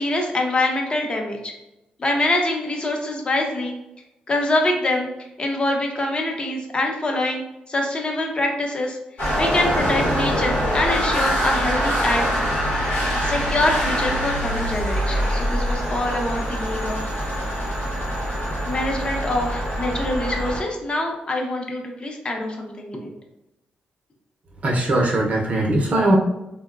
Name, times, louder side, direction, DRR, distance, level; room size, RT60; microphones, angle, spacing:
voice 1, 0.0-1.5 2.0-3.7 4.3-5.1 5.4-7.4 7.7-9.0 9.4-12.3 13.2-17.0 18.7-23.1, left 2 dB, 30° left, 1 dB, 0.7 m, -24 dB
sound 1, 9.2-20.6, equal, 85° left, 1.0 m, -24 dB
voice 2, 24.6-26.1, right 1 dB, 50° right, -1 dB, 0.6 m, -20 dB
3.6 x 2.1 x 2.3 m, 0.90 s
cardioid pair, 95°, 3 cm